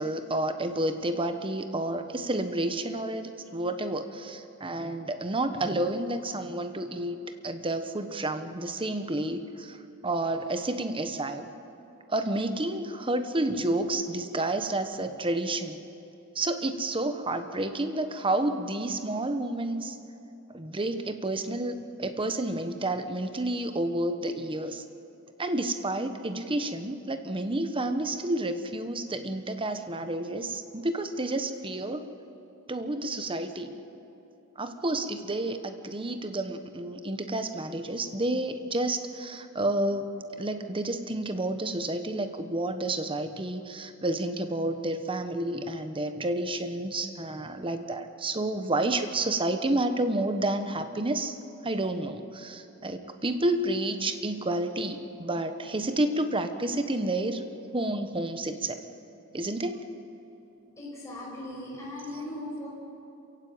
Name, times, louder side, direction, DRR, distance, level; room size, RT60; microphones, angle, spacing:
voice 1, 0.0-7.2 7.4-9.8 10.0-11.5 12.1-15.8 16.3-20.0 20.5-24.8 25.4-32.1 32.7-33.7 34.6-40.1 40.4-51.4 51.6-57.4 57.7-58.8 59.3-59.9, right 1 dB, 25° right, 8 dB, 1.2 m, -30 dB
voice 2, 60.8-62.7, left 1 dB, 15° left, -6 dB, 6.3 m, -38 dB
27.5 x 15.5 x 8.9 m, 2.8 s
head